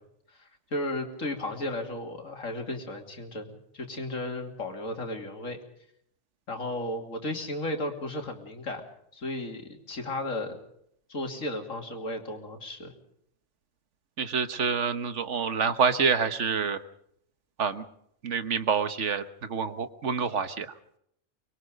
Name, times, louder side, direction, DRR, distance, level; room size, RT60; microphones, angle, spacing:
voice 1, 0.3-5.6 6.5-8.9 9.1-10.6 11.1-12.9, left 1 dB, 85° left, 4 dB, 3.1 m, -34 dB
voice 2, 14.2-16.8 17.6-17.8 18.2-20.7, right 6 dB, 65° right, 11 dB, 1.4 m, -27 dB
24.5 x 21.5 x 5.2 m, 0.71 s
omnidirectional pair, 1.3 m